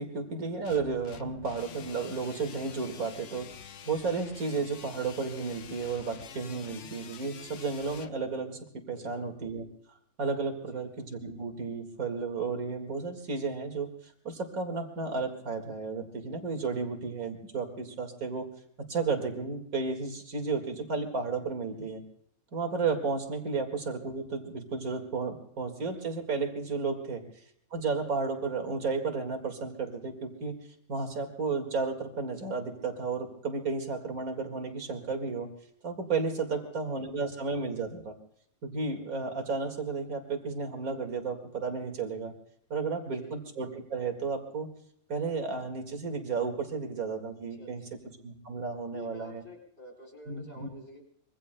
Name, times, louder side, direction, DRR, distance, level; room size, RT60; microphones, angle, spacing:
voice 1, 0.0-3.6 3.9-8.6 8.9-9.6 10.2-13.9 14.2-18.5 18.9-22.0 22.5-27.2 27.7-30.5 30.9-35.5 35.8-38.1 38.6-42.3 42.7-44.7 45.1-47.8 48.2-49.4 50.3-50.7, right 4 dB, 80° right, 5 dB, 2.4 m, -33 dB
sound 1, 0.7-8.1, left 6 dB, 60° left, 1.1 m, -47 dB
voice 2, 8.9-9.3 10.5-10.8 27.0-27.2 36.4-37.2 42.7-43.4 47.5-47.7 48.9-51.0, left 1 dB, 45° left, -1 dB, 4.4 m, -51 dB
25.0 x 23.5 x 2.2 m, 0.67 s
omnidirectional pair, 1.5 m